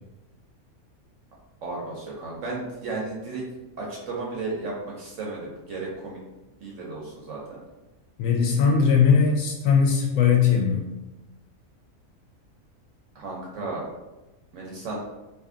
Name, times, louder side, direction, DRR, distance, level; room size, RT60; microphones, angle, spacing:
voice 1, 1.6-3.4 3.8-6.2 6.6-7.6 8.8-8.9 13.1-13.8 14.5-15.0, right 3 dB, 65° right, -3 dB, 0.9 m, -34 dB
voice 2, 8.2-10.9, left 6 dB, 70° left, 0 dB, 0.9 m, -20 dB
2.7 x 2.6 x 3.6 m, 1.0 s
omnidirectional pair, 1.5 m